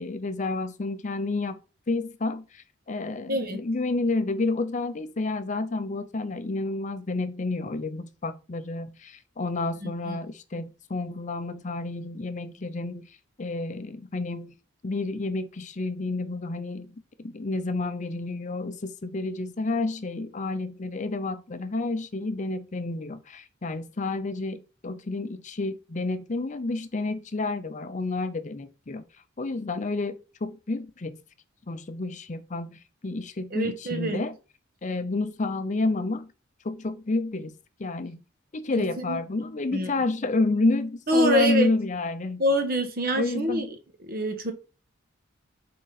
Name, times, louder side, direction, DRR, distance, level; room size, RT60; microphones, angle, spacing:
voice 1, 0.0-1.6 1.9-14.5 14.8-29.0 29.4-31.2 31.7-34.3 34.8-36.3 36.6-37.5 37.8-38.2 38.5-42.4 43.1-43.7, left 2 dB, 40° left, 0.6 m, -30 dB
voice 2, 3.3-3.6 9.8-10.2 33.5-34.2 39.1-39.2 39.7-39.9 41.1-41.7 42.4-43.7 44.1-44.5, equal, 50° right, 1.3 m, -25 dB
8.0 x 3.7 x 4.1 m
head